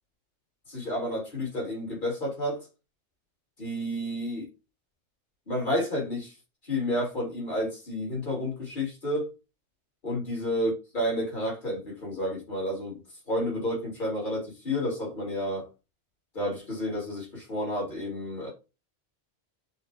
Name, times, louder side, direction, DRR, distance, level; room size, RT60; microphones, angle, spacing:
voice 1, 0.7-2.7 3.6-4.5 5.5-6.3 6.6-9.3 10.0-13.0 13.3-15.7 16.3-18.5, left 1 dB, 45° left, 2.1 m, -30 dB
6.2 x 2.2 x 3.1 m
omnidirectional pair, 1.2 m